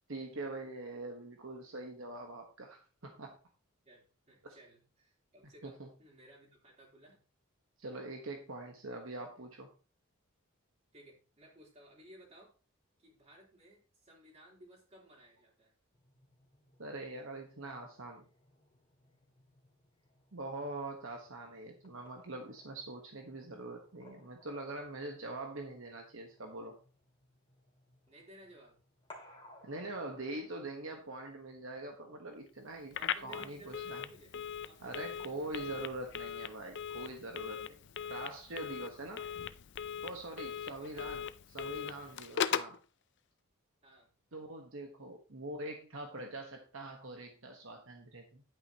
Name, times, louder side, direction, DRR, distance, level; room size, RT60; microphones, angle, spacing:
voice 1, 0.1-3.3 4.4-4.6 5.6-5.9 7.8-9.7 16.8-18.3 20.3-26.8 29.6-34.0 34.8-37.8 38.1-39.2 40.0-41.2 41.5-42.7 44.3-48.4, right 2 dB, 65° right, 3 dB, 1.3 m, -43 dB
voice 2, 3.8-7.2 10.9-12.5 13.0-15.7 28.1-28.8 32.9-34.4 34.6-35.6 40.6-41.1 42.3-42.7 43.8-44.1, right 1 dB, 30° right, -2 dB, 3.5 m, -58 dB
sound 1, 15.9-33.0, left 1 dB, 20° left, 2.2 m, -63 dB
Telephone, 32.9-42.8, left 8 dB, 55° left, 0.5 m, -39 dB
10.5 x 8.8 x 2.9 m, 0.36 s
head